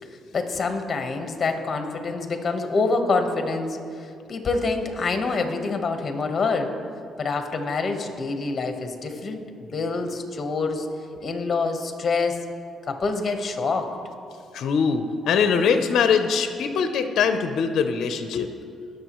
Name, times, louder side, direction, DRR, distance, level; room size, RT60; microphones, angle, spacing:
voice 1, 0.3-6.7 7.2-10.9 11.2-12.4 12.9-13.9, left 3 dB, 40° left, 5 dB, 1.2 m, -26 dB
voice 2, 14.5-18.7, left 6 dB, 70° left, 8 dB, 0.6 m, -22 dB
19.5 x 6.7 x 3.1 m, 2.4 s
cardioid pair, 90°, 0 cm